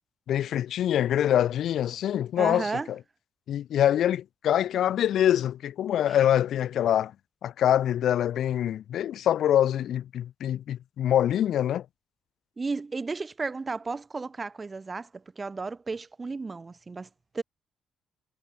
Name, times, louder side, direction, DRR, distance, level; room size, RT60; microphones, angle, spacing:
voice 1, 0.3-2.7 3.5-7.1 7.4-11.8, left 11 dB, 70° left, 1.4 m, -25 dB
voice 2, 2.4-2.9 6.1-6.2 12.6-17.1 17.3-17.4, right 4 dB, 30° right, 0.6 m, -33 dB
cardioid pair, 90°, 0 cm